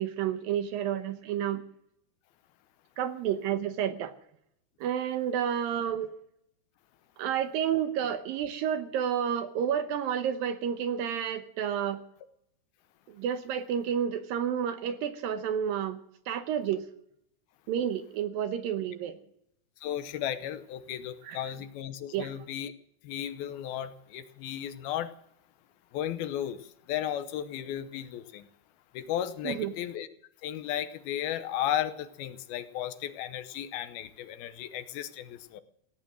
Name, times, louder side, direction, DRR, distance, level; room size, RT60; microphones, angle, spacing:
voice 1, 0.0-1.6 3.0-4.2 4.8-6.1 7.2-12.0 13.1-16.0 16.3-16.8 17.7-19.2 21.2-21.4 22.1-22.3 29.4-29.7, right 9 dB, 75° right, 9 dB, 2.4 m, -30 dB
voice 2, 19.8-22.7 23.0-25.1 25.9-26.6 26.9-28.5 28.9-30.1 30.4-35.6, left 11 dB, 75° left, 11 dB, 2.6 m, -34 dB
17.0 x 11.0 x 7.5 m, 0.74 s
omnidirectional pair, 4.6 m